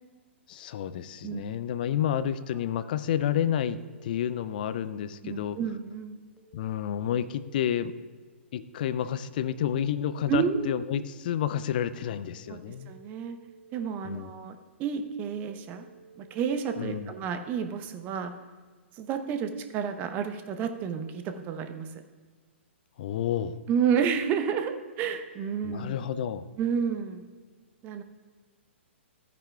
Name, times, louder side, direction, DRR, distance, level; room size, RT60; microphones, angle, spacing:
voice 1, 0.5-5.6 6.5-7.9 8.5-12.9 14.0-14.3 16.8-17.1 23.0-23.6 25.6-26.5, left 10 dB, 45° left, 14 dB, 0.5 m, -30 dB
Telephone, 1.9-2.9 3.4-4.9 6.4-7.9 9.4-10.9 12.4-13.9 15.4-16.9, right 5 dB, 10° left, 1.5 m, -55 dB
voice 2, 5.2-6.2 10.3-10.7 12.5-13.4 13.7-15.9 16.2-18.3 19.0-22.0 23.7-26.0 26.6-27.2 27.8-28.0, right 7 dB, 25° right, 8 dB, 0.7 m, -30 dB
14.5 x 9.4 x 2.3 m, 1.4 s
figure-of-eight pair, 115°, 7 cm